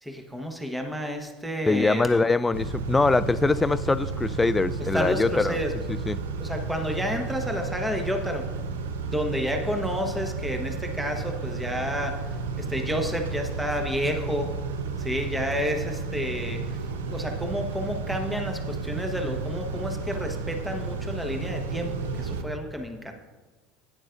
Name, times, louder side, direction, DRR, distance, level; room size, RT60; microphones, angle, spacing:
voice 1, 0.0-2.3 4.9-5.7 6.4-8.5 9.1-12.2 12.6-14.5 15.0-16.8 17.1-23.1, equal, 5° right, 4 dB, 1.2 m, -30 dB
voice 2, 1.7-5.6 5.9-6.2, left 3 dB, 15° left, 16 dB, 0.3 m, -23 dB
Car / Idling / Accelerating revving vroom, 2.5-22.4, right 4 dB, 80° right, 0.7 m, -32 dB
11.5 x 9.4 x 2.6 m, 1.3 s
hypercardioid pair, 80°, 0 cm